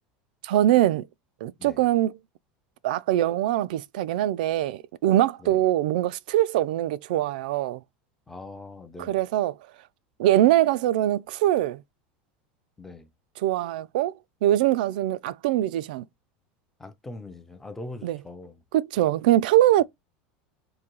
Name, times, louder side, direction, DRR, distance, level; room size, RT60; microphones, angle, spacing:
voice 1, 0.4-1.1 1.4-2.1 2.8-7.8 9.1-9.6 10.2-11.8 13.4-14.1 14.4-16.0 18.0-18.2 18.7-19.8, right 13 dB, 75° right, 0.4 m, -22 dB
voice 2, 8.3-9.2 12.8-13.1 16.8-18.6 19.0-19.1, left 2 dB, 5° left, 0.4 m, -42 dB
3.8 x 2.6 x 2.9 m
supercardioid pair, 180°, 5 cm